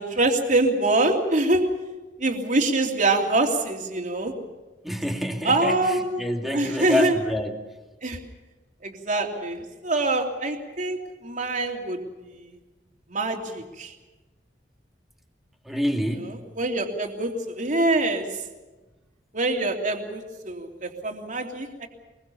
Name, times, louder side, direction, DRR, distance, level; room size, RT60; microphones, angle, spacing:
voice 1, 0.0-1.6 2.2-4.3 5.4-6.2 6.5-7.1 8.0-8.2 8.8-12.0 12.4-12.5 13.1-13.9 16.2-18.2 19.3-21.9, right 2 dB, 45° right, 3 dB, 3.1 m, -24 dB
voice 2, 4.8-7.6 15.7-16.4, left 1 dB, ahead, 3 dB, 2.4 m, -27 dB
23.0 x 22.5 x 7.1 m, 1.2 s
head